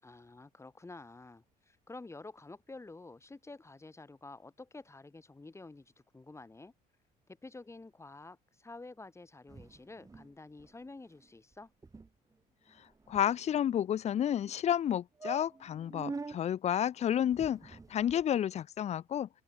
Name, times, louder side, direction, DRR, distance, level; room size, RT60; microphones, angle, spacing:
voice 1, 0.0-6.7 7.3-11.7, left 3 dB, 15° left, 6.7 m, -50 dB
sound 1, 9.5-10.3 10.6-10.7 11.0-11.3 11.5-11.6 11.8-12.1 12.7-13.8 14.4-14.5 14.8-14.9 15.2-16.4 17.2-18.2, right 3 dB, 20° right, 2.1 m, -45 dB
voice 2, 13.1-19.3, left 10 dB, 40° left, 0.5 m, -31 dB
cardioid pair, 110°, 17 cm